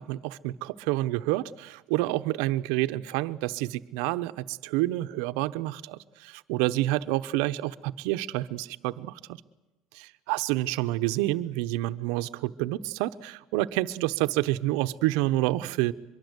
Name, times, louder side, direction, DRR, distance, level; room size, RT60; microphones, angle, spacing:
voice 1, 0.0-9.4 9.9-15.9, right 17 dB, 80° right, 0.9 m, -28 dB
24.0 x 23.0 x 8.2 m
cardioid pair, 150°, 0 cm